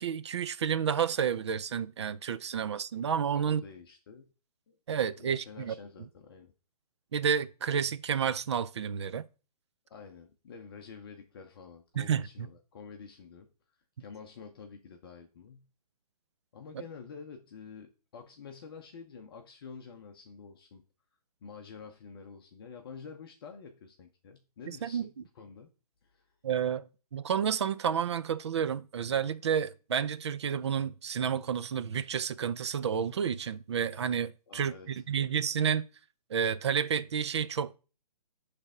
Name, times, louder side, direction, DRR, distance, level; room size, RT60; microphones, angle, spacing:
voice 1, 0.0-3.6 4.9-5.7 7.1-9.3 12.0-12.5 24.7-25.1 26.4-26.8 27.1-35.9 36.3-37.8, right 7 dB, 45° right, 0.4 m, -30 dB
voice 2, 3.3-4.3 4.7-4.8 5.2-6.5 9.9-13.5 14.0-15.7 16.5-20.8 21.4-25.7 26.0-26.2 34.5-34.9, left 5 dB, 35° left, 0.8 m, -48 dB
8.2 x 3.4 x 4.9 m
hypercardioid pair, 155°, 20 cm